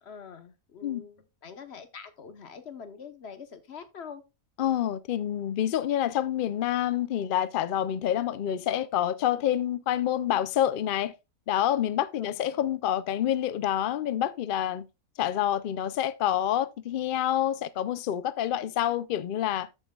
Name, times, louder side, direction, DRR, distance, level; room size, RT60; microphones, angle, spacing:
voice 1, 0.0-4.2 12.1-12.4, left 6 dB, 50° left, 1.2 m, -45 dB
voice 2, 4.6-11.1 11.5-14.9 15.2-19.7, left 11 dB, 75° left, 0.4 m, -27 dB
13.5 x 5.6 x 2.3 m
omnidirectional pair, 1.5 m